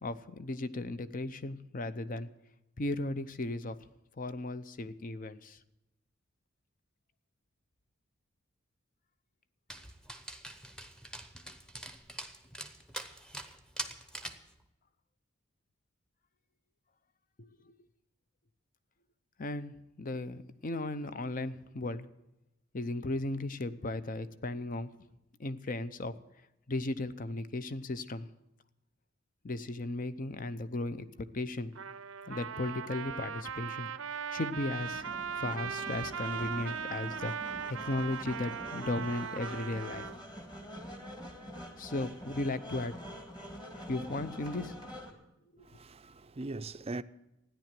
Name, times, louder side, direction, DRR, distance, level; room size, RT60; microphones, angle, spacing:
voice 1, 0.0-2.3 2.8-3.8 4.2-5.6 17.4-17.7 19.4-22.1 22.7-24.9 25.4-26.1 26.7-28.3 29.4-31.7 32.3-35.0 35.4-40.1 41.8-42.9 43.9-44.7 45.5-45.7, left 2 dB, 45° left, 0.7 m, -36 dB
Dog, 9.7-14.5, right 1 dB, 5° left, 0.9 m, -44 dB
Trumpet, 31.8-40.2, right 7 dB, 90° right, 0.6 m, -39 dB
sound 1, 34.8-45.1, equal, 20° left, 1.8 m, -46 dB
voice 2, 45.6-47.0, right 2 dB, 30° right, 0.5 m, -40 dB
14.0 x 10.0 x 7.5 m
head